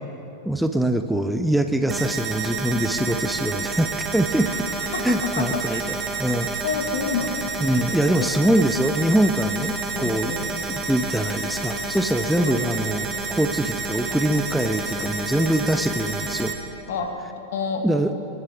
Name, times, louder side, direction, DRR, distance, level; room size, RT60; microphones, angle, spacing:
voice 1, 0.4-4.7 5.0-6.5 7.6-10.3 10.7-16.5 17.8-18.1, right 1 dB, ahead, 7 dB, 0.6 m, -23 dB
sound 1, 1.9-16.5, right 4 dB, 20° right, 1.7 m, -29 dB
voice 2, 4.4-5.8 6.6-7.8 8.2-8.3 9.9-10.5 12.4-12.7 16.9-17.1 17.5-17.9, left 5 dB, 55° left, 5 dB, 1.8 m, -29 dB
26.5 x 11.0 x 3.5 m, 2.8 s
figure-of-eight pair, 90°, 0 cm